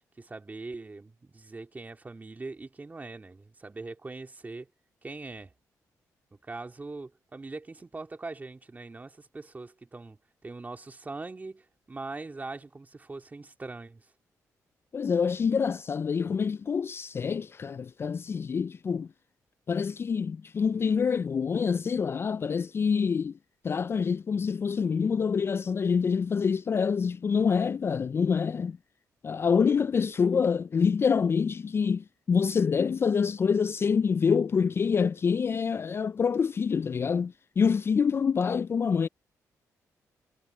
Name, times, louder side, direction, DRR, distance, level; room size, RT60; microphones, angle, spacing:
voice 1, 0.2-4.7 5.0-5.5 6.3-10.2 10.4-14.0, right 3 dB, 25° right, 2.6 m, -41 dB
voice 2, 14.9-19.1 19.7-23.3 23.6-28.8 29.2-39.1, left 6 dB, 40° left, 0.3 m, -26 dB
cardioid pair, 80°, 6 cm